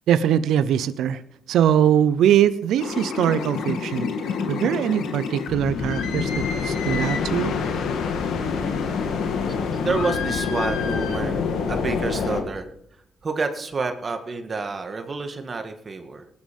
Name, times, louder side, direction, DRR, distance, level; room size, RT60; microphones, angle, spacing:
voice 1, 0.1-1.2 1.5-4.1 4.5-7.5, right 10 dB, 85° right, 14 dB, 0.6 m, -21 dB
sound 1, 2.8-12.4, left 5 dB, 85° left, 2.1 m, -26 dB
voice 2, 9.5-12.7 13.2-16.3, right 4 dB, 45° right, 6 dB, 1.9 m, -29 dB
18.5 x 11.0 x 5.3 m, 0.73 s
cardioid pair, 65°, 0 cm